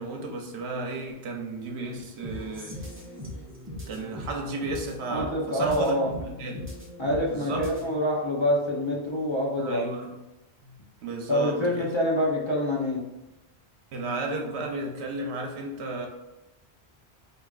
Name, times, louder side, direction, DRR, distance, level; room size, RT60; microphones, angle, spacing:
voice 1, 0.0-2.8 3.9-6.7 7.3-7.8 9.6-10.1 10.6-10.8 11.0-11.9 13.9-16.1, right 2 dB, 80° right, 1 dB, 0.9 m, -33 dB
sound 1, 2.2-8.0, equal, 15° right, 0.6 m, -40 dB
voice 2, 5.1-6.1 7.0-9.9 11.3-13.0, left 1 dB, 30° left, -5 dB, 0.6 m, -26 dB
4.8 x 2.6 x 2.4 m, 0.99 s
omnidirectional pair, 1.1 m